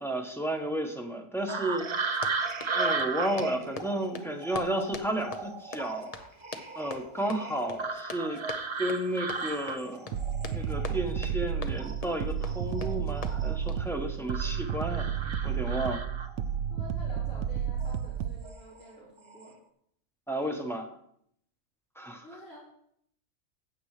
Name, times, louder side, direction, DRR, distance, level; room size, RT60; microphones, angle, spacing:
voice 1, 0.0-1.9 2.2-2.3 2.7-6.1 6.8-8.4 8.8-10.2 10.5-15.1 15.4-16.0 20.3-21.0 22.0-22.3, right 1 dB, ahead, 3 dB, 0.9 m, -32 dB
sound 1, 1.5-11.5 11.8-13.8 14.3-16.6 17.7-18.0 18.4-18.9 19.2-19.5, right 4 dB, 35° right, 0.4 m, -36 dB
Run, 2.1-13.9, left 4 dB, 40° left, 0.6 m, -44 dB
sound 2, 10.1-18.4, right 8 dB, 85° right, 1.0 m, -32 dB
voice 2, 16.7-19.5 22.2-22.6, left 1 dB, 80° left, -9 dB, 3.7 m, -49 dB
15.0 x 8.3 x 3.2 m, 0.70 s
omnidirectional pair, 1.5 m